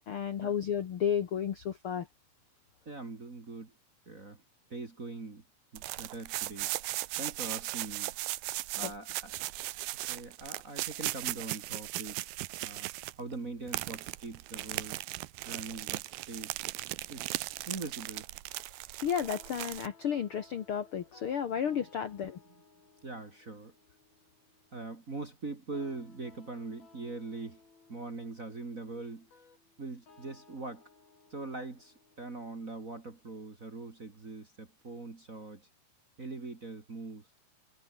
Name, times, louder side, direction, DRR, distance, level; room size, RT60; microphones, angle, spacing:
voice 1, 0.1-2.1 8.8-8.9 19.0-22.4, left 8 dB, 60° left, 1.5 m, -32 dB
voice 2, 2.9-3.7 4.1-4.4 4.7-5.4 5.7-6.7 7.2-8.1 8.8-9.4 10.1-12.2 12.6-12.9 13.2-15.0 15.5-16.5 17.1-17.3 17.7-18.3 23.0-23.7 24.7-27.6 27.9-29.3 29.8-30.8 31.3-35.7 36.2-37.2, right 3 dB, 30° right, 2.0 m, -42 dB
sound 1, 5.8-13.3 13.7-19.9, right 18 dB, 85° right, 2.6 m, -37 dB
sound 2, 19.2-34.2, left 4 dB, 80° left, 9.2 m, -62 dB
omnidirectional pair, 4.2 m